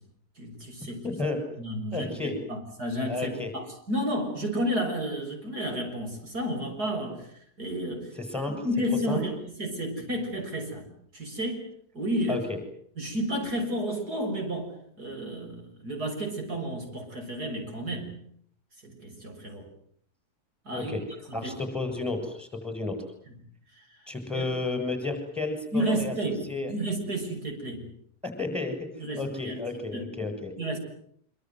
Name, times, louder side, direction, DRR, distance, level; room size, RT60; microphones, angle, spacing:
voice 1, 0.4-1.0 1.6-7.3 7.6-8.1 8.6-10.8 11.1-11.7 11.9-12.4 13.0-14.7 15.0-18.1 18.8-19.6 20.7-20.9 21.4-21.5 24.3-24.5 25.7-26.4 26.7-27.9 29.0-29.6 29.9-30.0 30.6-30.8, equal, 80° right, 3 dB, 7.3 m, -31 dB
voice 2, 1.0-1.4 1.9-2.3 3.1-3.5 8.2-8.6 9.1-9.2 12.3-12.6 20.7-21.0 21.3-23.0 24.1-26.1 26.5-26.7 28.2-28.8 29.2-30.5, left 3 dB, ahead, 6 dB, 7.8 m, -32 dB
26.0 x 26.0 x 8.0 m, 0.64 s
omnidirectional pair, 1.7 m